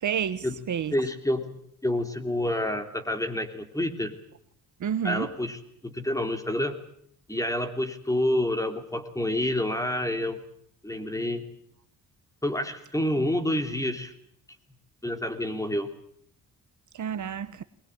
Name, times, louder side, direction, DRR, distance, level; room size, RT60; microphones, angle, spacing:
voice 1, 0.0-0.9 4.8-5.3 16.9-17.6, right 8 dB, 50° right, 1.1 m, -29 dB
voice 2, 0.9-4.1 5.0-6.8 7.3-10.4 10.8-11.4 12.4-14.1 15.0-15.9, left 1 dB, 10° left, 3.2 m, -28 dB
23.0 x 21.0 x 9.0 m
cardioid pair, 115°, 37 cm